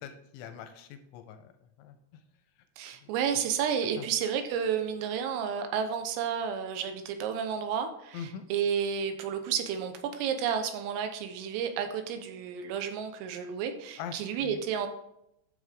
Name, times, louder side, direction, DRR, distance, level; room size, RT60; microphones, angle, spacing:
voice 1, 0.0-1.5 1.8-2.0 3.0-3.1 4.0-4.1 8.1-8.4 14.0-14.6, left 8 dB, 85° left, 7 dB, 2.8 m, -42 dB
voice 2, 2.8-14.9, right 7 dB, 90° right, 7 dB, 3.7 m, -31 dB
12.0 x 6.6 x 3.6 m, 0.80 s
omnidirectional pair, 5.8 m